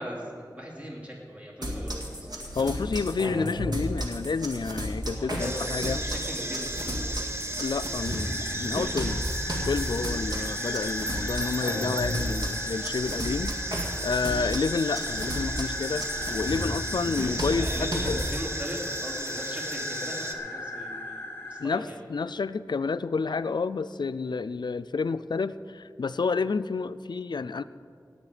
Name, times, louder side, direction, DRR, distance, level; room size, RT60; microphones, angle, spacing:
voice 1, 0.0-2.4 5.1-7.2 17.6-22.0, equal, 20° right, -3 dB, 2.8 m, -39 dB
sound 1, 1.6-18.4, equal, 70° right, 2.0 m, -33 dB
voice 2, 2.5-6.0 7.6-9.2 9.7-16.0 16.3-18.2 21.6-21.8 22.1-27.6, left 4 dB, 90° left, 14 dB, 0.4 m, -29 dB
sound 2, 5.4-20.3, right 1 dB, 35° right, 1.1 m, -35 dB
sound 3, 8.0-21.6, left 2 dB, 25° left, 2.5 m, -38 dB
17.5 x 9.1 x 5.0 m, 2.4 s
wide cardioid pair, 60°, 7 cm